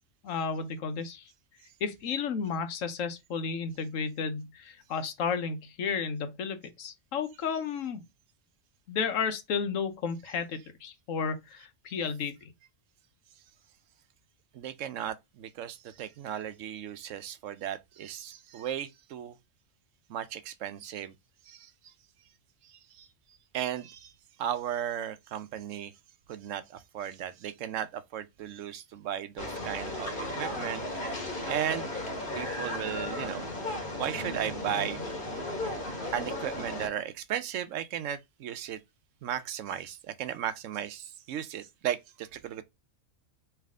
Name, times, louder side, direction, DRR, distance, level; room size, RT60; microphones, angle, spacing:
voice 1, 0.2-1.2 1.8-8.0 8.9-12.3, left 6 dB, 90° left, 1.2 m, -32 dB
voice 2, 14.5-19.3 20.1-21.1 21.5-21.7 22.7-23.1 23.5-24.1 24.4-25.9 26.3-30.9 31.4-31.9 32.3-33.5 34.0-35.0 36.1-38.8 39.2-42.6, right 10 dB, 75° right, 1.0 m, -35 dB
sound 1, 29.4-36.9, left 1 dB, 40° left, 1.6 m, -35 dB
3.4 x 3.2 x 3.5 m
omnidirectional pair, 1.3 m